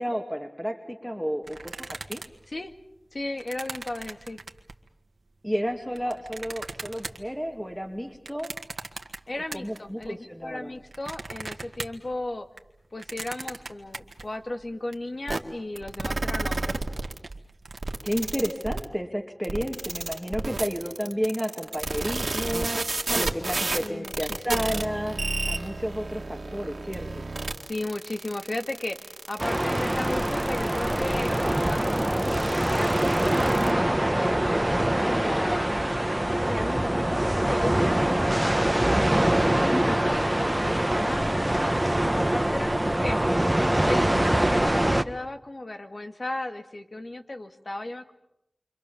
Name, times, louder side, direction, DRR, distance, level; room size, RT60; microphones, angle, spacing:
voice 1, 0.0-2.2 5.4-8.5 9.5-10.7 18.0-22.7 23.1-27.2 39.1-39.4 39.7-40.1 40.6-40.9 43.3-43.4, equal, 5° left, 3 dB, 2.4 m, -32 dB
sound 1, 1.4-4.9 5.5-10.1 10.4-15.0 15.3-15.4 15.6-15.9 16.3-18.3, right 3 dB, 90° right, 1.7 m, -41 dB
voice 2, 3.1-4.4 9.3-12.5 12.9-16.8 23.8-24.8 27.7-32.9 33.4-35.7 36.2-39.0 39.6-43.2 43.8-48.1, left 2 dB, 60° left, 6 dB, 2.2 m, -35 dB
sound 2, 15.3-15.4 15.8-17.2 17.8-18.8 19.4-33.7, right 2 dB, 70° right, 2.1 m, -31 dB
sound 3, 29.4-45.0, right 1 dB, 20° right, 1.3 m, -24 dB
28.5 x 25.5 x 7.1 m, 0.80 s
wide cardioid pair, 45°, 0 cm